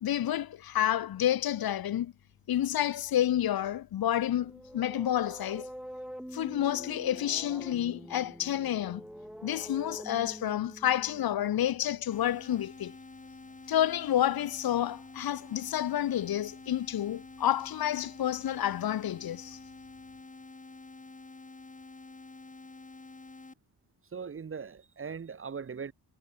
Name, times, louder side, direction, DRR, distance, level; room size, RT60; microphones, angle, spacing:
voice 1, 0.0-2.1 2.5-5.7 6.3-9.0 9.4-13.0 13.7-19.6, left 11 dB, 70° left, 0.7 m, -29 dB
sound 1, 4.3-12.0, equal, ahead, 4.3 m, -46 dB
sound 2, 12.1-23.5, left 3 dB, 20° left, 4.4 m, -49 dB
voice 2, 24.1-25.9, right 6 dB, 35° right, 0.9 m, -39 dB
wide cardioid pair, 150°, 38 cm